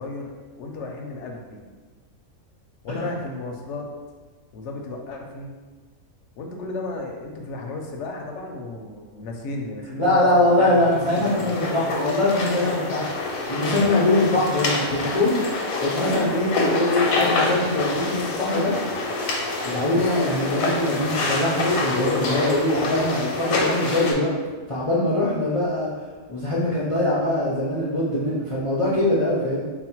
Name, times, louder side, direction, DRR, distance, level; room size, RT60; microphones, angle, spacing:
voice 1, 0.0-1.6 2.8-3.9 4.5-5.5 6.4-10.8 11.1-11.6 19.7-20.1, left 2 dB, 65° left, 2 dB, 0.8 m, -34 dB
voice 2, 10.0-15.4 15.8-18.7 19.6-24.3 24.7-25.9 26.3-29.6, left 1 dB, 45° left, -8 dB, 0.4 m, -22 dB
sound 1, 10.7-24.1, left 2 dB, 85° left, 1.1 m, -26 dB
4.1 x 2.1 x 4.4 m, 1.4 s
omnidirectional pair, 1.4 m